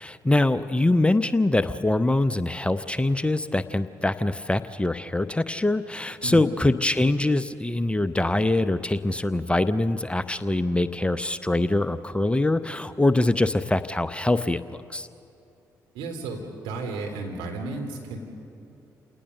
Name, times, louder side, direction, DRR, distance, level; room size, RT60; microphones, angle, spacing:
voice 1, 0.0-15.1, left 2 dB, 15° left, 13 dB, 0.8 m, -24 dB
voice 2, 15.9-18.2, right 3 dB, 70° right, 1 dB, 3.3 m, -33 dB
28.5 x 19.0 x 6.7 m, 2.7 s
hypercardioid pair, 45°, 9 cm